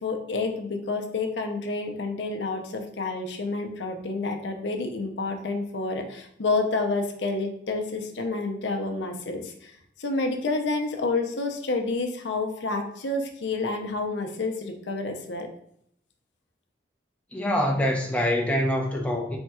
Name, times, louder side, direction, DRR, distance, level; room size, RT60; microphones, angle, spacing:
voice 1, 0.0-9.7 10.0-15.5, left 3 dB, 70° left, 4 dB, 0.6 m, -29 dB
voice 2, 17.3-19.4, equal, 5° left, 0 dB, 0.6 m, -25 dB
3.5 x 2.3 x 4.2 m, 0.70 s
head